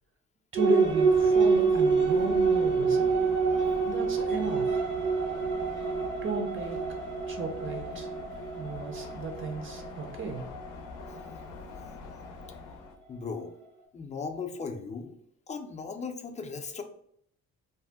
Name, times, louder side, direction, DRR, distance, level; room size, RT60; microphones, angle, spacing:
voice 1, 0.5-3.1 3.9-4.9 6.2-6.8 7.3-8.1 8.5-10.5, right 3 dB, 40° right, 4 dB, 0.6 m, -34 dB
sound 1, 0.5-12.5, right 4 dB, 75° right, 1.0 m, -27 dB
sound 2, 0.8-13.0, left 4 dB, 85° left, 0.5 m, -44 dB
voice 2, 13.1-13.5 13.9-15.2 15.5-16.8, left 5 dB, 25° left, 5 dB, 0.4 m, -37 dB
2.7 x 2.1 x 3.3 m, 0.69 s
cardioid pair, 90°, 30 cm